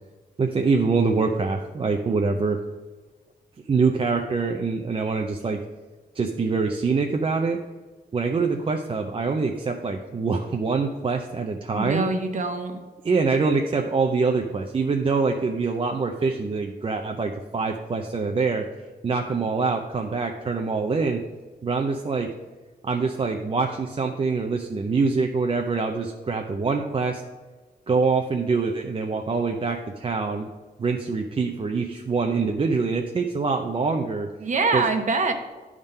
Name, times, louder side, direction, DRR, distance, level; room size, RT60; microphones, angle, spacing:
voice 1, 0.4-2.6 3.7-5.6 6.1-7.6 8.1-12.1 13.0-18.7 19.0-21.2 21.6-22.3 22.8-27.2 27.9-30.5 30.8-34.3 34.7-34.8, right 4 dB, 35° right, 3 dB, 0.5 m, -24 dB
voice 2, 11.7-12.8 34.4-35.3, right 3 dB, 50° right, 6 dB, 1.0 m, -24 dB
10.5 x 3.7 x 5.4 m, 1.3 s
wide cardioid pair, 130°, 16 cm